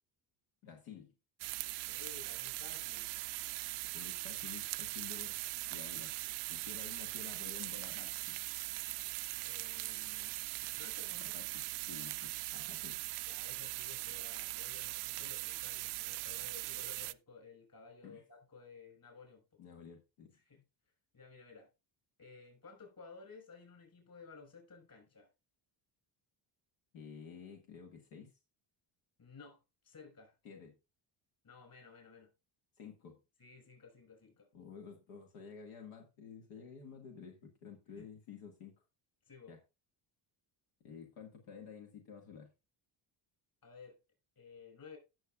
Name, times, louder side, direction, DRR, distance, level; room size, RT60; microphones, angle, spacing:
voice 1, 0.6-1.1 3.9-5.3 5.7-6.2 6.5-8.4 11.2-13.0 18.0-18.2 19.6-20.3 26.9-28.3 30.4-30.8 32.8-33.2 34.5-38.7 39.5-39.6 40.8-42.5, left 7 dB, 90° left, 2.1 m, -51 dB
sound 1, 1.4-17.1, right 22 dB, 90° right, 0.5 m, -40 dB
voice 2, 1.9-3.1 9.4-11.4 13.3-19.4 20.4-20.6 21.1-21.7 22.2-25.3 29.2-29.6 29.8-30.3 31.4-32.3 33.4-34.5 38.0-38.1 39.3-39.5 43.6-44.0 44.4-45.0, left 5 dB, 45° left, 5.5 m, -55 dB
16.0 x 6.7 x 2.4 m
cardioid pair, 105°, 48 cm